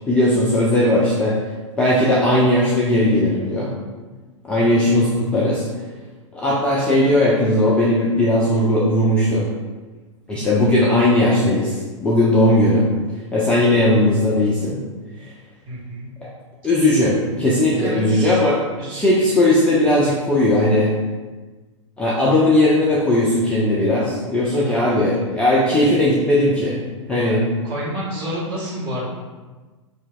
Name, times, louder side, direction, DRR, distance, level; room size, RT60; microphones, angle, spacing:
voice 1, 0.1-1.3 1.8-3.7 4.4-5.6 6.3-9.5 10.3-12.9 13.3-14.8 15.2-15.3 16.6-18.6 18.9-20.9 22.0-26.8 27.1-27.4, left 1 dB, 5° left, -6 dB, 0.3 m, -17 dB
voice 2, 4.6-4.9 15.6-16.1 17.8-18.4 18.8-19.0 24.6-24.9 27.2-27.4 27.6-29.1, equal, 30° right, -6 dB, 1.2 m, -30 dB
4.4 x 2.7 x 2.3 m, 1.3 s
figure-of-eight pair, 105°, 16 cm